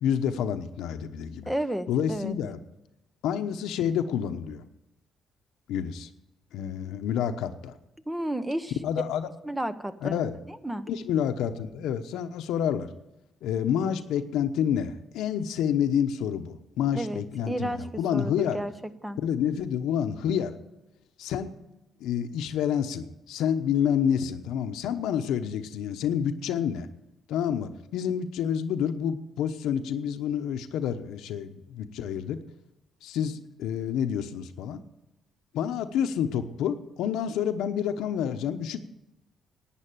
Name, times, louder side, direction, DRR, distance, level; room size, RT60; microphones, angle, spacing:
voice 1, 0.0-1.5 1.9-2.6 3.2-4.6 5.7-6.1 6.5-7.7 8.8-9.3 10.0-10.3 10.9-12.9 13.4-17.7 18.0-18.6 19.2-20.5 21.2-21.5 22.0-26.9 27.3-32.4 33.0-34.8 35.5-38.9, left 8 dB, 85° left, 8 dB, 1.0 m, -28 dB
voice 2, 1.5-2.4 8.1-8.8 9.4-10.9 16.9-18.7 19.0-19.2, right 1 dB, 10° right, 12 dB, 0.9 m, -32 dB
11.5 x 9.2 x 9.2 m, 0.91 s
cardioid pair, 90°, 0 cm